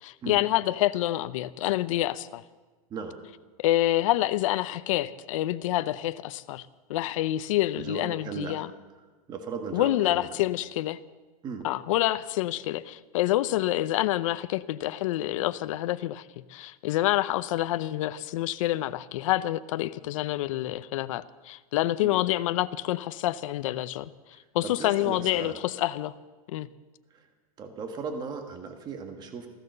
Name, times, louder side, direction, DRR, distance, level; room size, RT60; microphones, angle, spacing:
voice 1, 0.0-2.4 3.6-8.7 9.7-11.0 11.6-24.1 24.5-26.1 26.5-26.7, left 15 dB, 60° left, 14 dB, 0.7 m, -27 dB
voice 2, 7.7-8.6 9.3-10.3 11.4-11.7 22.0-22.2 24.6-25.6 27.1-27.3 27.6-29.5, right 5 dB, 20° right, 5 dB, 1.5 m, -37 dB
15.5 x 13.5 x 6.7 m, 1.3 s
supercardioid pair, 155°, 19 cm